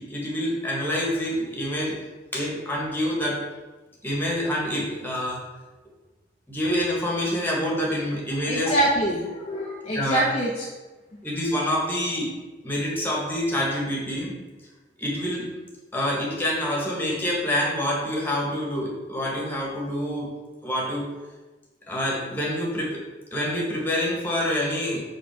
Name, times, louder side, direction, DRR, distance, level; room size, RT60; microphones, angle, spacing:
voice 1, 0.0-2.0 2.3-3.4 4.0-5.4 6.5-8.9 9.9-10.3 11.2-12.3 12.6-14.3 15.0-15.4 15.9-20.3 20.6-21.0 21.9-23.0 23.3-25.0, equal, 10° left, -3 dB, 1.6 m, -26 dB
voice 2, 8.5-10.6, right 1 dB, 30° left, -5 dB, 0.9 m, -25 dB
5.4 x 4.1 x 6.0 m, 1.2 s
head